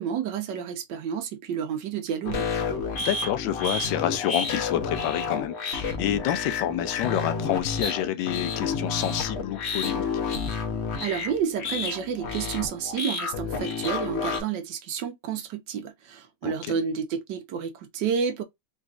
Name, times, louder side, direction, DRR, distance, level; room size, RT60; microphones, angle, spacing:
voice 1, 0.0-2.5 11.0-18.4, right 7 dB, 70° right, 1.3 m, -30 dB
sound 1, 2.2-14.4, left 4 dB, 60° left, 0.7 m, -30 dB
voice 2, 3.0-10.0 16.4-16.5, left 11 dB, 85° left, 1.3 m, -28 dB
4.0 x 2.6 x 2.4 m
omnidirectional pair, 2.1 m